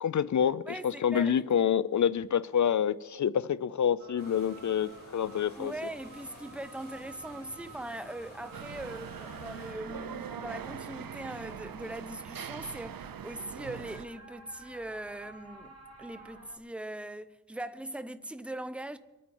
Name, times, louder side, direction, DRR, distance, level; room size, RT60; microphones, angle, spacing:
voice 1, 0.0-5.7, left 8 dB, 55° left, 0.5 m, -27 dB
voice 2, 0.7-1.6 5.6-19.0, right 1 dB, 5° right, 0.7 m, -41 dB
sound 1, 4.0-16.6, right 3 dB, 45° right, 2.6 m, -53 dB
sound 2, 4.2-9.7, left 1 dB, 30° left, 5.1 m, -52 dB
sound 3, 8.5-14.0, right 8 dB, 80° right, 0.7 m, -42 dB
23.5 x 9.2 x 4.3 m
wide cardioid pair, 70°, 34 cm